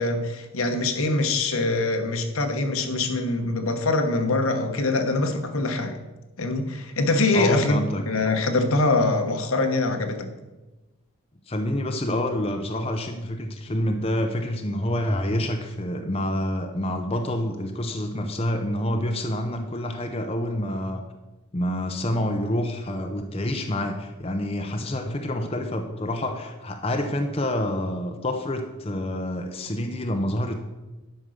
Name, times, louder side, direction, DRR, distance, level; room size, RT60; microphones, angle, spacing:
voice 1, 0.0-6.0 6.4-7.8 8.1-10.3, left 2 dB, 75° left, 6 dB, 1.1 m, -23 dB
voice 2, 7.3-8.0 11.5-21.0 21.5-30.5, left 1 dB, 25° left, 4 dB, 0.7 m, -27 dB
11.0 x 5.4 x 6.5 m, 1.1 s
head